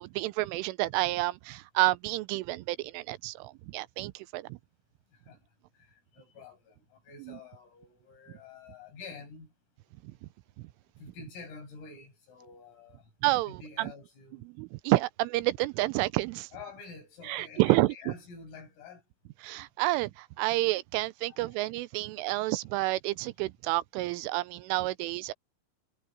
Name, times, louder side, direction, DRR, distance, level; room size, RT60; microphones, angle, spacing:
voice 1, 0.0-4.6 7.3-7.4 10.0-10.1 13.2-13.9 14.5-16.5 17.2-18.1 19.4-25.3, right 20 dB, 80° right, 3.1 m, -29 dB
voice 2, 5.8-9.5 11.0-13.1 13.4-14.4 16.5-19.0 21.2-21.6, left 5 dB, 80° left, 10.5 m, -48 dB
omnidirectional pair, 5.9 m